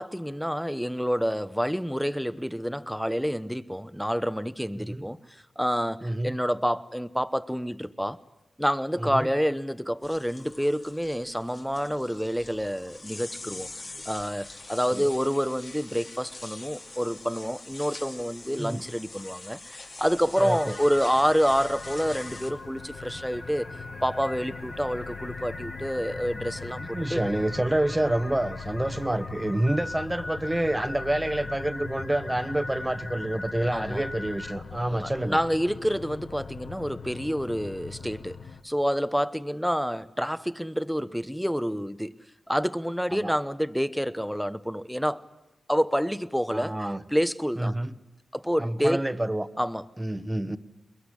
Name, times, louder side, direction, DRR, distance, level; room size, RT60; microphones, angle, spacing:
voice 1, 0.0-8.2 8.6-13.7 14.0-23.7 24.0-27.2 33.7-34.0 34.9-38.4 38.6-42.1 42.5-45.2 45.7-46.8 47.1-47.7 48.3-49.0 49.6-49.8, equal, ahead, 1.0 m, -28 dB
voice 2, 4.8-5.1 6.0-6.3 9.0-9.3 14.9-15.1 18.6-18.8 20.4-20.8 26.8-35.4 43.1-43.3 46.5-47.0 47.6-47.9 48.6-49.5 50.0-50.6, right 1 dB, 15° right, 1.2 m, -28 dB
sound 1, 10.0-22.5, left 2 dB, 50° left, 2.9 m, -44 dB
sound 2, 20.0-38.6, left 5 dB, 80° left, 1.4 m, -42 dB
sound 3, 20.3-34.6, left 2 dB, 35° left, 2.9 m, -41 dB
22.5 x 22.0 x 10.0 m
cardioid pair, 50°, 0 cm